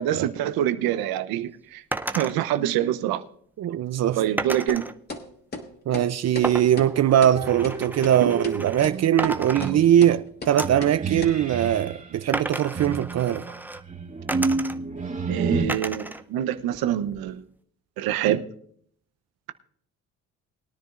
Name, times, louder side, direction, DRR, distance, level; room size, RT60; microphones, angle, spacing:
voice 1, 0.0-1.8 2.2-3.2 4.2-4.9 8.2-8.3 15.3-17.4 18.0-18.4, right 12 dB, 80° right, 0.8 m, -25 dB
sound 1, 1.9-2.3 4.4-4.9 6.4-8.9 9.2-10.1 10.6-10.9 12.3-13.8 14.3-15.0 15.7-16.2 16.6-17.4, right 2 dB, 5° right, 0.6 m, -33 dB
voice 2, 3.6-4.2 5.9-13.6, right 11 dB, 50° right, 0.5 m, -21 dB
sound 2, 4.7-4.8 5.1-5.2 5.5-5.6 5.9-6.1 6.3-6.5 6.8-6.9 7.2-7.3 7.6-7.7 8.0-8.1 8.4-8.6 8.8-9.0 9.2-9.3 9.6-9.7 10.0-10.1 10.4-10.5 10.8-10.9 11.2-11.3, left 3 dB, 25° left, 2.4 m, -35 dB
sound 3, 7.3-12.1 12.7-15.7, right 4 dB, 20° right, 2.4 m, -30 dB
21.5 x 10.0 x 2.5 m
supercardioid pair, 70°, 36 cm